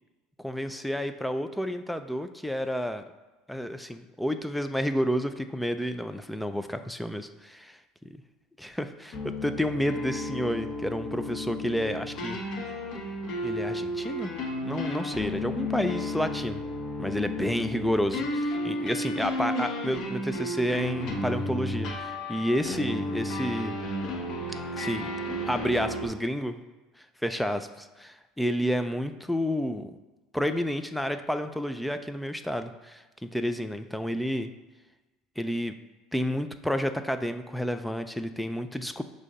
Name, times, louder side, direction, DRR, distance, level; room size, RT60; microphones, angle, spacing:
voice 1, 0.4-3.0 3.5-7.8 8.0-8.2 8.6-12.4 13.4-14.3 14.6-16.6 17.0-23.8 24.7-25.1 25.5-26.6 27.0-27.7 28.0-29.9 30.3-34.5 35.4-35.7 36.1-39.0, equal, ahead, 9 dB, 0.3 m, -30 dB
sound 1, 9.1-26.1, left 1 dB, 50° left, 0.9 m, -33 dB
6.5 x 2.8 x 5.2 m, 1.2 s
cardioid pair, 140°, 0 cm